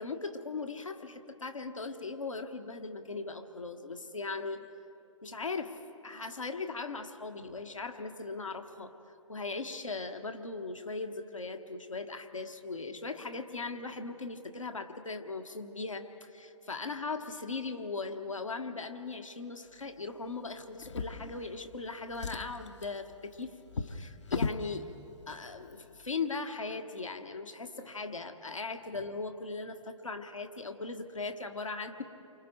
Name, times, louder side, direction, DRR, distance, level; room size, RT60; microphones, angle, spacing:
voice 1, 0.0-4.7 5.2-8.9 9.3-24.9 25.3-32.0, left 3 dB, 80° left, 6 dB, 1.4 m, -39 dB
Drawer open or close, 20.8-21.8 22.1-24.7 25.6-25.7 26.1-26.2, left 5 dB, 65° left, 1.0 m, -37 dB
29.5 x 25.0 x 4.6 m, 2.9 s
figure-of-eight pair, 125°, 16 cm